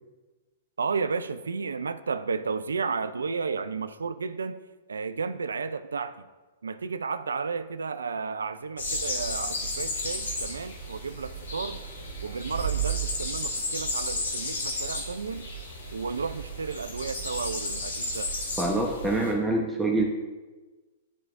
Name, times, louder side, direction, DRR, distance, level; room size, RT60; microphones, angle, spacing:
voice 1, 0.8-4.6 4.9-6.3 6.6-11.8 12.2-15.5 15.9-18.3, right 5 dB, 85° right, 13 dB, 0.4 m, -32 dB
sound 1, 8.8-19.3, equal, 85° left, 2.0 m, -33 dB
voice 2, 18.6-20.0, right 2 dB, 10° right, -1 dB, 0.9 m, -25 dB
12.0 x 4.6 x 2.5 m, 1.2 s
hypercardioid pair, 115°, 0 cm